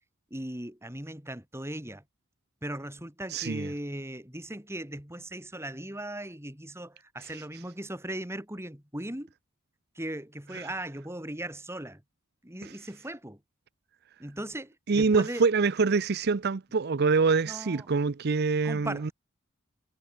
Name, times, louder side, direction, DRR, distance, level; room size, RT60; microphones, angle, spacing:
voice 1, 0.3-2.0 2.6-9.3 10.0-12.0 12.4-13.4 14.2-15.4 17.4-17.9 18.6-19.1, right 1 dB, 15° right, 3.9 m, -38 dB
voice 2, 3.3-3.7 7.2-7.4 10.5-10.7 12.6-12.8 14.9-19.1, right 4 dB, 50° right, 0.6 m, -25 dB
head